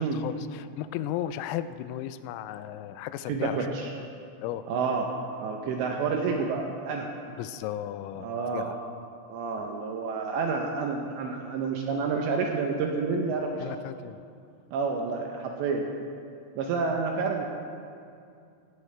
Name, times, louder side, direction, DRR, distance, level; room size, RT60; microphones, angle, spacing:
voice 1, 0.0-4.1 4.4-4.6 7.4-8.8 9.6-9.7 13.6-14.2, left 12 dB, 90° left, 13 dB, 3.3 m, -35 dB
voice 2, 3.3-3.9 4.7-5.1 5.4-7.1 8.2-8.8 9.3-13.8 14.7-15.9 16.6-17.4, right 4 dB, 80° right, 1 dB, 2.7 m, -29 dB
16.5 x 15.0 x 3.3 m, 2.5 s
omnidirectional pair, 5.9 m